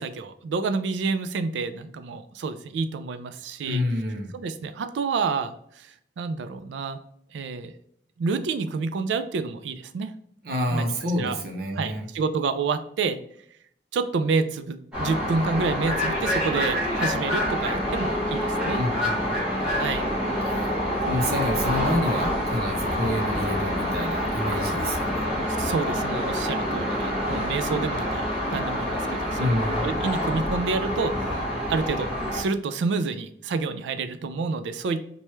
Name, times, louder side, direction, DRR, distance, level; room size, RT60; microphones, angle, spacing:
voice 1, 0.0-3.8 4.3-5.9 6.2-7.0 7.3-7.7 8.2-10.1 10.7-11.4 11.7-13.2 13.9-18.8 19.8-20.0 24.5-24.6 25.6-28.2 28.5-31.1 31.7-35.0, right 4 dB, 90° right, 10 dB, 0.3 m, -28 dB
voice 2, 3.6-4.3 10.4-12.1 18.8-19.7 20.5-20.7 21.0-25.2 29.4-29.9, left 1 dB, 60° right, 3 dB, 0.7 m, -28 dB
sound 1, 14.9-32.4, equal, 5° right, 1.0 m, -27 dB
3.1 x 2.2 x 3.0 m, 0.67 s
head